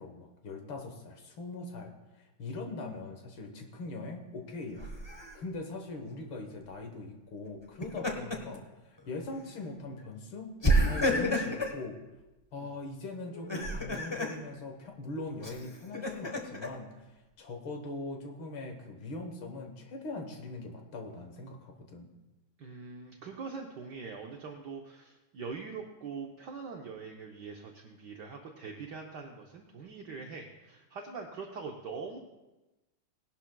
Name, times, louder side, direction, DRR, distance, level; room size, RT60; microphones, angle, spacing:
voice 1, 0.0-1.9 2.2-4.9 5.4-10.6 10.9-12.0 12.5-17.0 17.4-22.1, left 2 dB, 70° left, 3 dB, 2.0 m, -41 dB
Laughter, 4.8-5.3 7.6-8.6 9.0-9.2 10.6-11.8 13.3-14.4 15.4-16.7, equal, 25° left, 0.6 m, -30 dB
voice 2, 22.6-32.2, right 5 dB, 65° right, 1 dB, 1.3 m, -43 dB
18.0 x 11.5 x 2.3 m, 1.1 s
omnidirectional pair, 2.3 m